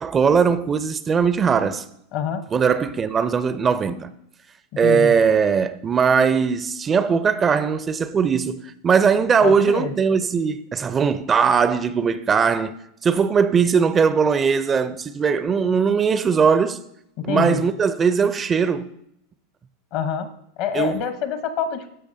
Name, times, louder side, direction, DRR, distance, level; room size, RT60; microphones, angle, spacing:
voice 1, 0.0-1.8 2.5-4.1 4.8-12.7 13.0-16.8 17.2-18.9 20.7-21.0, right 6 dB, 25° right, 0.4 m, -20 dB
voice 2, 2.1-2.4 4.8-5.1 9.4-9.9 17.2-17.6 19.9-20.3 20.6-21.9, left 7 dB, 55° left, 0.9 m, -25 dB
13.0 x 4.9 x 2.7 m
hypercardioid pair, 95°, 0 cm